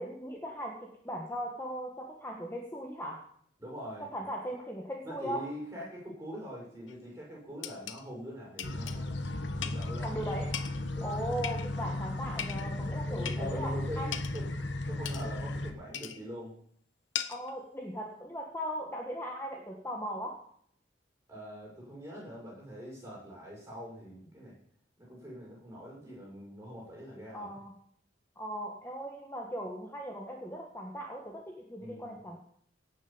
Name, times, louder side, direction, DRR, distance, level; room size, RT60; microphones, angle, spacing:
voice 1, 0.0-3.2 4.1-5.4 10.0-10.5 11.0-14.1 17.3-20.4 27.3-27.7 28.3-32.4, equal, 15° left, 0 dB, 1.5 m, -38 dB
voice 2, 3.6-4.1 5.0-9.1 9.6-10.2 10.9-11.3 13.1-14.5 14.9-16.5 21.3-24.6 25.0-27.6 31.8-32.2, equal, 15° right, -4 dB, 6.6 m, -43 dB
sound 1, 6.9-7.0 7.6-8.0 8.6-9.0 9.6-9.9 10.5-10.8 11.4-11.9 12.4-12.7 13.3-13.5 14.1-14.4 15.1-15.3 15.9-16.2 17.2-17.5, left 9 dB, 85° left, 1.0 m, -38 dB
sound 2, 8.6-15.7, left 1 dB, 70° left, 1.3 m, -35 dB
17.5 x 6.9 x 7.2 m, 0.65 s
head